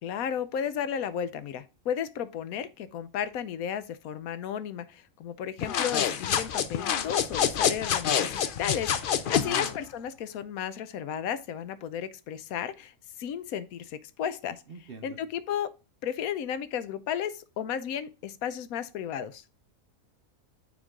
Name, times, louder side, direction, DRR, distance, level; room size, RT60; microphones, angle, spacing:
voice 1, 0.0-14.6 15.0-15.7 16.0-19.4, left 9 dB, 90° left, 1.1 m, -34 dB
sound 1, 5.6-9.8, left 8 dB, 60° left, 0.6 m, -27 dB
voice 2, 9.3-9.7 14.7-15.2, right 6 dB, 50° right, 0.8 m, -43 dB
9.1 x 3.8 x 3.6 m
omnidirectional pair, 1.4 m